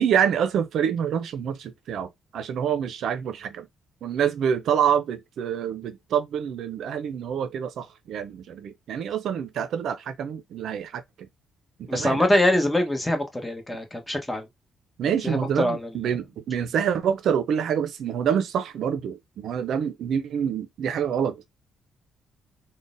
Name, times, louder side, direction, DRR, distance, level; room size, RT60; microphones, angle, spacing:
voice 1, 0.0-3.7 4.0-11.0 11.8-12.3 15.0-21.6, right 8 dB, 70° right, 0.4 m, -26 dB
voice 2, 11.9-14.4 15.2-15.9, left 1 dB, 10° left, 1.0 m, -23 dB
3.7 x 2.0 x 2.5 m
cardioid pair, 90°, 0 cm